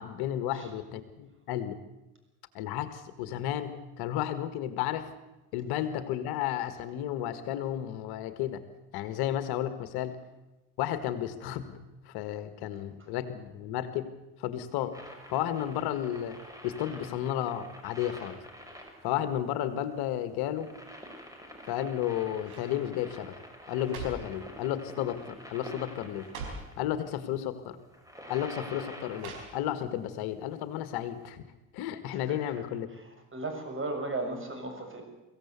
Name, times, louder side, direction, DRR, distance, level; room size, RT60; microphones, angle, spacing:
voice 1, 0.0-1.8 2.5-5.1 5.5-8.6 8.9-10.2 10.8-11.8 12.0-14.1 14.4-14.9 15.3-16.4 16.6-18.4 19.0-20.7 21.7-23.3 23.7-26.3 26.8-27.8 28.3-31.4 31.7-32.9, left 11 dB, 65° left, 11 dB, 1.8 m, -32 dB
sound 1, 14.9-26.7 27.8-29.7 31.2-31.3, equal, 10° right, 5.9 m, -47 dB
sound 2, 21.6-22.0 22.4-22.8 23.5-24.4 25.2-25.4 25.7-25.8 26.2-26.7 27.7-27.8 29.2-29.9 30.3-30.4, right 4 dB, 85° right, 4.7 m, -43 dB
voice 2, 32.1-32.6 32.9-35.0, right 2 dB, 30° right, 5 dB, 7.2 m, -36 dB
23.5 x 16.0 x 8.2 m, 1.0 s
hypercardioid pair, 60°, 42 cm